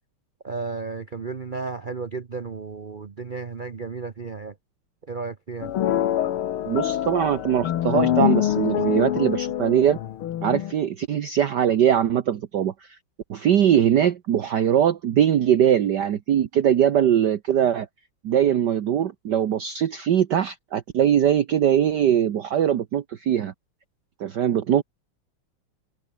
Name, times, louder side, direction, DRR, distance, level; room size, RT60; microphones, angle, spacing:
voice 1, 0.4-4.5 5.1-5.7, right 4 dB, 90° right, 0.4 m, -33 dB
sound 1, 5.6-10.7, left 11 dB, 75° left, 2.0 m, -25 dB
voice 2, 6.7-10.0 10.4-12.9 13.3-17.9 18.2-23.5 24.2-24.8, right 10 dB, 55° right, 1.5 m, -21 dB
omnidirectional pair, 2.4 m